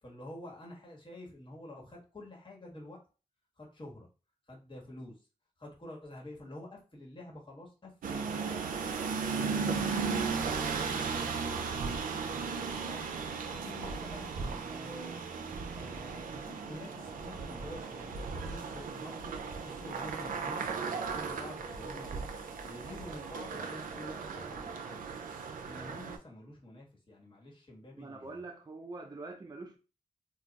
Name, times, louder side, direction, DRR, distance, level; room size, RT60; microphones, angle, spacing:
voice 1, 0.0-3.0 3.6-4.1 4.5-5.3 5.6-8.6 9.3-13.1 13.5-15.2 15.7-19.3 19.6-22.3 22.6-25.1 25.6-28.4, left 1 dB, 35° left, 1.2 m, -49 dB
sound 1, 8.0-26.2, right 5 dB, 90° right, 0.4 m, -36 dB
voice 2, 28.0-29.8, right 3 dB, 30° right, 0.4 m, -44 dB
2.3 x 2.2 x 3.9 m
cardioid pair, 45°, 14 cm